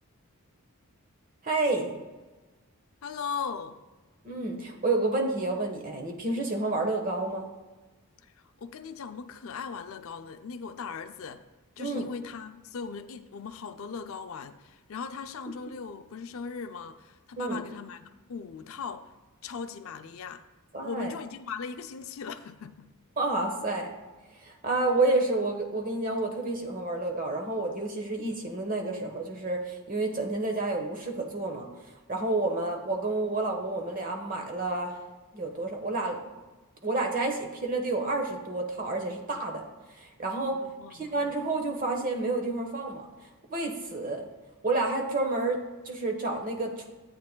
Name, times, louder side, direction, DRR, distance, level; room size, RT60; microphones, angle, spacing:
voice 1, 1.4-2.0 4.2-7.5 11.8-12.1 17.4-17.6 20.7-21.1 23.2-23.9 24.3-35.0 35.3-36.2 36.8-40.6 40.9-44.3 44.6-46.8, right 2 dB, 40° right, 2 dB, 1.1 m, -30 dB
voice 2, 3.0-3.8 8.2-11.4 11.8-19.1 19.4-20.4 20.8-22.9 40.5-41.2, left 5 dB, 65° left, 9 dB, 0.4 m, -39 dB
12.0 x 8.3 x 2.2 m, 1.2 s
head